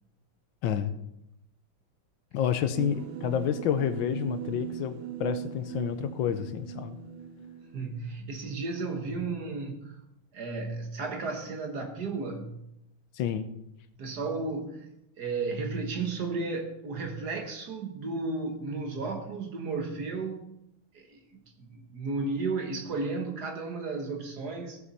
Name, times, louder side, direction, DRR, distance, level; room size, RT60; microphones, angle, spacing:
voice 1, 2.3-7.0 13.1-13.5, left 9 dB, 75° left, 1.4 m, -29 dB
sound 1, 2.8-8.1, right 10 dB, 80° right, 1.6 m, -39 dB
voice 2, 7.7-10.0 10.3-12.6 14.0-14.9 15.2-20.5 20.9-21.2 21.6-24.8, right 3 dB, 55° right, 1.9 m, -33 dB
16.5 x 7.3 x 4.2 m
omnidirectional pair, 2.2 m